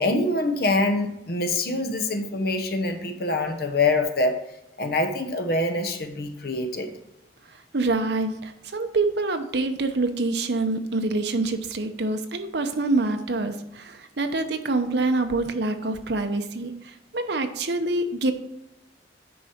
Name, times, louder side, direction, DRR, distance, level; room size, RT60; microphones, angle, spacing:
voice 1, 0.0-4.4 4.8-6.9, left 2 dB, 55° left, 7 dB, 0.9 m, -25 dB
voice 2, 7.7-16.7 17.1-18.3, right 2 dB, 65° right, 7 dB, 0.8 m, -26 dB
9.5 x 5.2 x 4.3 m, 0.87 s
head